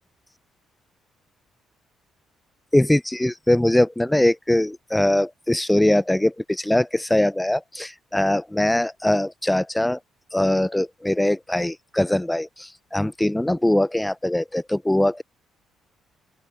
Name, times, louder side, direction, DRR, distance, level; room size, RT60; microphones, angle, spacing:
voice 1, 2.7-10.0 10.3-15.2, left 1 dB, 10° left, 0.8 m, -21 dB
open air
hypercardioid pair, 45°, 0 cm